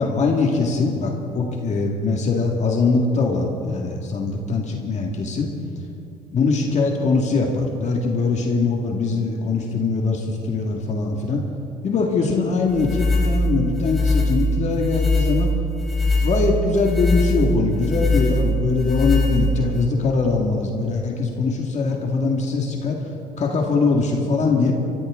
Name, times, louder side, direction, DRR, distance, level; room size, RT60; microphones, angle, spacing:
voice 1, 0.0-5.5 6.3-11.4 11.8-15.6 16.2-23.1 23.4-24.7, left 4 dB, 45° left, 0 dB, 2.0 m, -22 dB
sound 1, 12.7-19.8, left 1 dB, ahead, 4.3 m, -21 dB
25.0 x 14.5 x 3.8 m, 2.7 s
cardioid pair, 110°, 17 cm